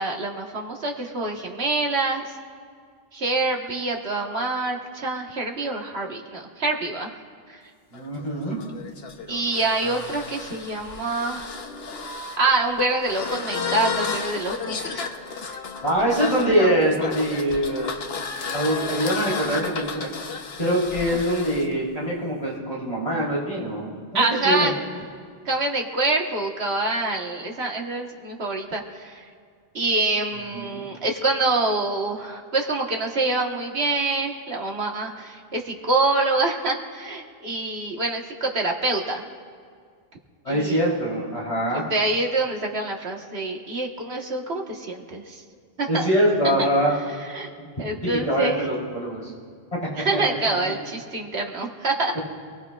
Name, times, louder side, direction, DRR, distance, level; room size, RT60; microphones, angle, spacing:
voice 1, 0.0-2.3 3.1-7.1 7.5-7.6 9.3-11.6 12.4-15.1 24.1-24.7 25.5-29.2 29.7-39.2 40.5-40.8 41.7-45.4 45.8-46.1 47.2-47.5 47.8-48.6 50.0-52.2, right 2 dB, 75° right, 0 dB, 1.8 m, -26 dB
sound 1, 7.9-21.7, left 4 dB, 70° left, 1.2 m, -32 dB
voice 2, 7.9-8.6 9.9-10.0 15.8-17.9 18.5-20.1 20.6-24.7 30.5-30.8 40.4-41.8 45.9-46.9 48.0-49.3 50.1-50.2 50.5-50.6, right 1 dB, 35° left, -7 dB, 3.9 m, -24 dB
27.5 x 18.0 x 2.5 m, 2.1 s
omnidirectional pair, 1.1 m